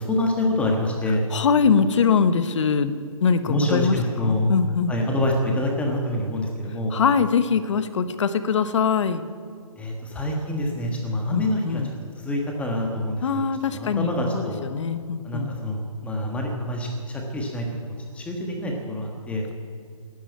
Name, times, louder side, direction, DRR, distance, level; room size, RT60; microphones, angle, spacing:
voice 1, 0.0-1.3 3.5-4.5 4.9-7.0 9.7-11.8 12.2-14.6 15.2-19.5, left 1 dB, 5° left, 0 dB, 1.5 m, -26 dB
voice 2, 1.3-2.9 3.2-4.0 4.2-5.0 6.9-9.2 11.3-11.9 13.2-15.5, left 6 dB, 60° left, 11 dB, 1.1 m, -22 dB
11.5 x 10.5 x 9.3 m, 2.2 s
hypercardioid pair, 145°, 18 cm